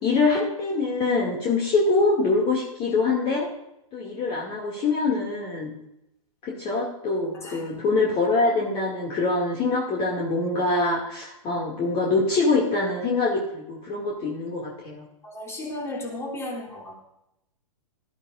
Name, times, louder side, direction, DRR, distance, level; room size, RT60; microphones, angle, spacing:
voice 1, 0.0-3.5 3.9-5.7 6.4-15.0, left 3 dB, 30° left, -3 dB, 2.5 m, -24 dB
voice 2, 7.3-7.7 15.2-17.0, left 1 dB, 15° left, -1 dB, 3.5 m, -35 dB
18.0 x 13.0 x 2.6 m, 0.84 s
hypercardioid pair, 130°, 18 cm